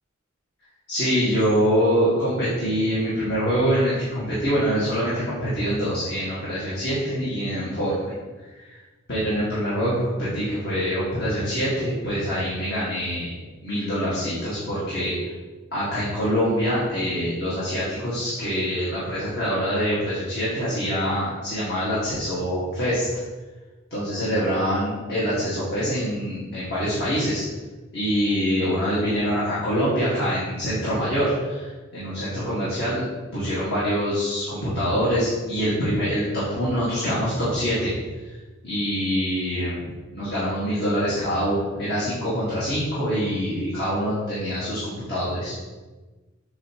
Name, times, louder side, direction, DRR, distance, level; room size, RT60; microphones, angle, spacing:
voice 1, 0.9-8.1 8.7-8.8 9.1-13.3 13.6-15.1 15.7-23.1 23.9-27.4 27.9-33.0 33.3-37.9 38.6-45.5, equal, 55° left, -10 dB, 1.8 m, -25 dB
7.8 x 4.5 x 3.0 m, 1.3 s
head